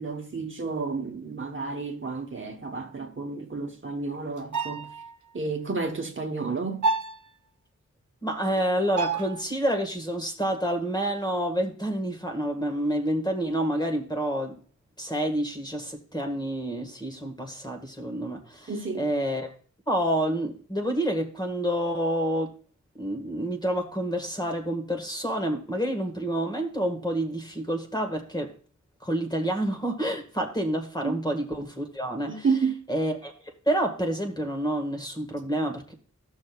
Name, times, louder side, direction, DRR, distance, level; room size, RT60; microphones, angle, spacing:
voice 1, 0.0-4.9 5.3-6.8 18.7-19.1 31.0-31.2 32.3-32.8, right 4 dB, 40° right, 1.1 m, -31 dB
sound 1, 4.4-5.1 6.8-7.2 9.0-9.4, right 4 dB, 75° right, 0.7 m, -28 dB
voice 2, 8.2-14.5 15.0-18.7 19.0-19.5 19.9-22.5 23.0-28.5 29.0-32.5 32.9-33.3 33.6-35.9, right 1 dB, 15° left, 1.6 m, -28 dB
14.5 x 6.4 x 2.4 m
wide cardioid pair, 95°, 30 cm